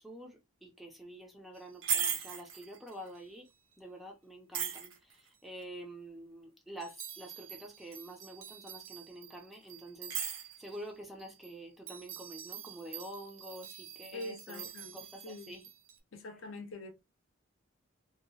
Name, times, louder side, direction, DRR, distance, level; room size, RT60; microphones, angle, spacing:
voice 1, 0.0-3.5 3.8-14.7 14.9-15.6, right 1 dB, ahead, 0.4 m, -48 dB
sound 1, 1.6-3.1 4.5-5.3 6.8-10.9 11.2-11.5 11.9-16.0, right 8 dB, 70° right, 0.6 m, -40 dB
voice 2, 14.1-15.6 16.1-16.9, left 2 dB, 70° left, 0.6 m, -45 dB
2.7 x 2.2 x 2.7 m
head